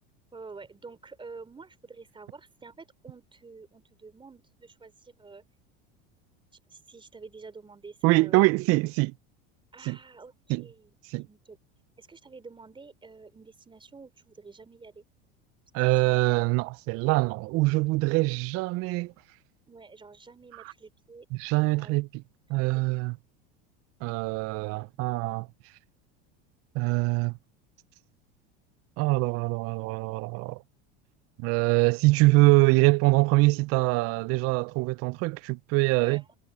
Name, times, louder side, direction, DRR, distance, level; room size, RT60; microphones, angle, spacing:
voice 1, 0.3-5.4 6.7-8.5 9.7-10.9 11.3-11.6 12.0-15.1 19.7-21.3 21.8-21.9 36.0-36.3, right 4 dB, 15° right, 4.0 m, -48 dB
voice 2, 8.0-9.1 9.9-10.0 10.5-10.6 11.1-11.3 15.7-19.1 21.3-22.2 22.5-23.2 24.0-25.5 26.7-27.4 29.0-30.6 31.4-36.2, right 24 dB, 55° right, 0.5 m, -24 dB
supercardioid pair, 115°, 29 cm